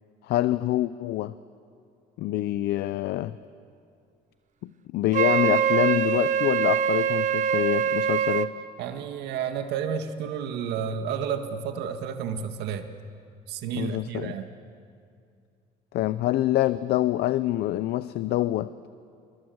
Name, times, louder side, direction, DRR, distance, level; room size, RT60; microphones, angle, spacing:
voice 1, 0.2-1.3 2.2-3.4 4.6-8.5 13.8-14.3 15.9-18.7, left 15 dB, 75° left, 15 dB, 0.6 m, -26 dB
Wind instrument woodwind instrument, 5.1-8.5, right 8 dB, 45° right, 0.9 m, -23 dB
voice 2, 8.8-12.9 13.5-14.5, right 7 dB, 85° right, 7 dB, 1.9 m, -31 dB
27.5 x 22.5 x 7.9 m, 2.3 s
cardioid pair, 110°, 17 cm